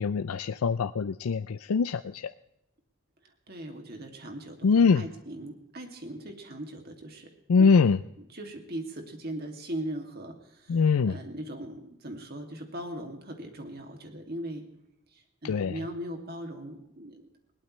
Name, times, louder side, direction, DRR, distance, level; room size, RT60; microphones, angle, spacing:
voice 1, 0.0-2.3 4.6-5.0 7.5-8.0 10.7-11.2 15.4-15.8, left 5 dB, 90° left, 12 dB, 0.4 m, -23 dB
voice 2, 3.5-7.3 7.6-7.7 8.3-14.6 15.1-17.3, right 1 dB, 45° right, 3 dB, 2.5 m, -39 dB
21.0 x 18.0 x 3.2 m, 0.84 s
head